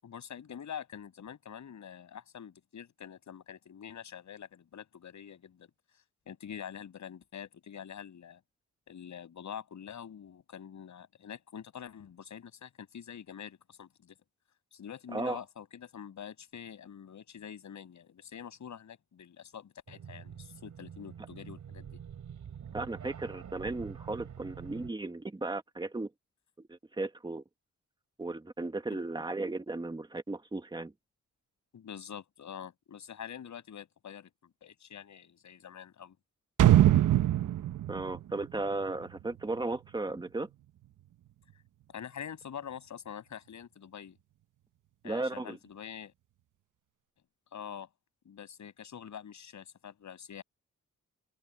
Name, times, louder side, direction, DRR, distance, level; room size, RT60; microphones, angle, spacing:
voice 1, 0.0-5.7 6.3-8.4 8.9-14.2 14.7-22.0 31.7-34.3 34.6-36.2 41.9-44.2 45.0-46.1 47.5-47.9 48.2-50.4, left 8 dB, 70° left, 7.5 m, -45 dB
sound 1, 19.9-24.9, right 8 dB, 70° right, 4.5 m, -46 dB
voice 2, 22.7-26.1 26.7-27.4 28.2-30.9 37.9-40.5 45.0-45.6, right 2 dB, 15° right, 1.5 m, -35 dB
sound 2, 36.6-39.4 39.7-39.8, right 12 dB, 90° right, 1.0 m, -24 dB
open air
wide cardioid pair, 145°, 30 cm